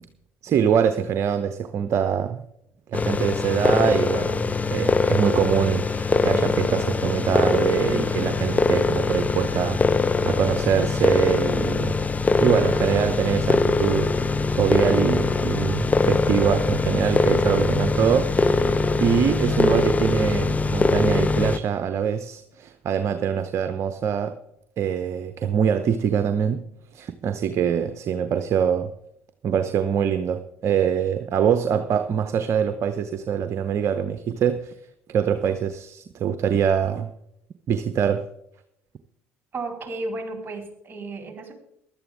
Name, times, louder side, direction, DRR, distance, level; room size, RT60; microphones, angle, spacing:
voice 1, 0.4-2.4 2.9-12.0 12.4-18.6 19.0-24.3 24.8-26.6 26.9-28.9 29.4-34.7 35.1-37.1 37.7-38.3, right 8 dB, 50° right, 0.9 m, -24 dB
sound 1, 2.9-21.6, left 3 dB, 20° left, 0.8 m, -22 dB
voice 2, 39.5-41.5, right 2 dB, 30° right, 4.3 m, -33 dB
16.0 x 12.0 x 3.6 m
hypercardioid pair, 60°, 7 cm